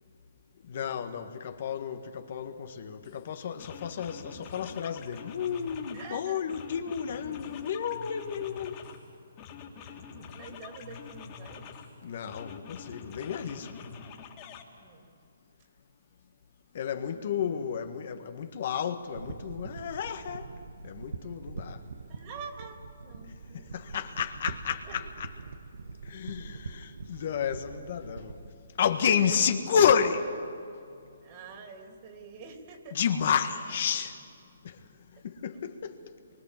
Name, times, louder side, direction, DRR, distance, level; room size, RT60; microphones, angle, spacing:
voice 1, 0.7-8.8 12.0-13.7 16.7-20.5 20.8-21.8 23.7-25.3 26.1-28.4 28.8-30.3 33.0-34.2 34.6-34.8 35.2-36.0, left 7 dB, 50° left, 1.6 m, -31 dB
sound 1, 3.0-3.2 3.6-6.1 6.5-9.0 9.4-11.9 12.3-14.6, left 6 dB, 25° left, 2.7 m, -46 dB
voice 2, 5.9-6.4 9.7-10.1 10.4-11.7 14.7-15.1 17.0-17.3 22.1-24.1 24.8-25.1 29.1-29.3 31.2-33.0, right 5 dB, 30° right, 3.2 m, -47 dB
sound 2, 19.1-28.5, right 4 dB, 75° right, 1.5 m, -43 dB
27.5 x 23.5 x 7.6 m
hypercardioid pair, 155°, 0 cm